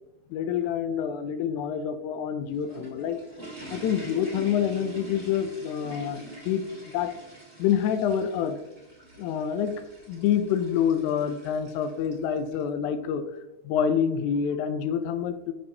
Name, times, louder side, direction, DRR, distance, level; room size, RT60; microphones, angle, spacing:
voice 1, 0.3-3.2 3.7-6.6 6.9-7.1 7.6-8.6 9.2-9.7 10.1-13.2 13.6-15.5, left 8 dB, 85° left, 9 dB, 2.1 m, -27 dB
sound 1, 2.3-12.6, right 1 dB, 15° right, 2.0 m, -45 dB
11.5 x 4.4 x 2.7 m, 0.97 s
omnidirectional pair, 3.3 m